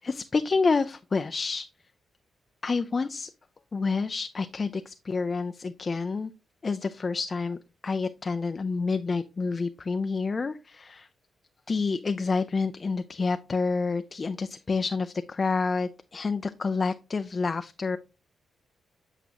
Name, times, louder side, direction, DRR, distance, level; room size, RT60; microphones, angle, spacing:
voice 1, 0.0-1.7 2.6-3.3 3.7-6.3 6.6-7.6 7.8-11.1 11.7-18.0, left 4 dB, 35° left, 9 dB, 0.4 m, -28 dB
8.2 x 4.9 x 2.9 m, 0.31 s
cardioid pair, 90°, 0 cm